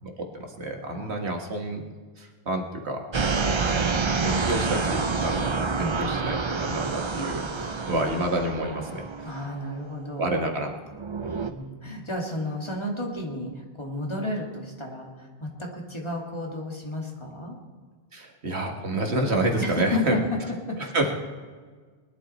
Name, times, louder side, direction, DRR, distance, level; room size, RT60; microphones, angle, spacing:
voice 1, 0.0-1.8 2.2-3.0 3.8-9.1 10.2-10.7 11.2-11.6 18.1-20.2 20.8-21.1, right 1 dB, 80° right, 3 dB, 2.0 m, -29 dB
sound 1, 3.1-10.3 10.9-11.5, right 4 dB, 30° right, 0.7 m, -28 dB
voice 2, 5.7-6.1 9.2-10.3 11.2-17.6 19.6-20.4 20.7-20.8, left 1 dB, 25° left, -1 dB, 2.4 m, -32 dB
21.0 x 12.0 x 4.4 m, 1.5 s
omnidirectional pair, 1.1 m